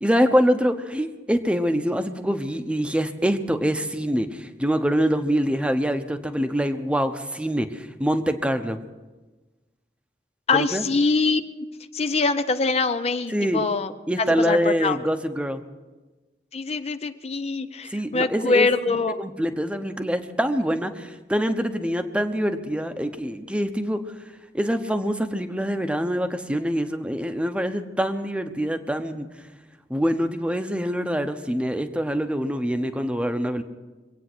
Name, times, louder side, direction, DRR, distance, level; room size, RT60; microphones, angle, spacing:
voice 1, 0.0-8.8 10.5-10.8 13.3-13.6 14.1-15.6 17.9-18.7 19.2-24.0 24.5-29.3 29.9-33.6, equal, 5° right, 8 dB, 0.9 m, -25 dB
voice 2, 10.5-11.4 11.9-13.9 14.2-15.0 16.5-19.2, left 4 dB, 35° left, 9 dB, 0.6 m, -23 dB
24.0 x 9.1 x 6.2 m, 1.2 s
head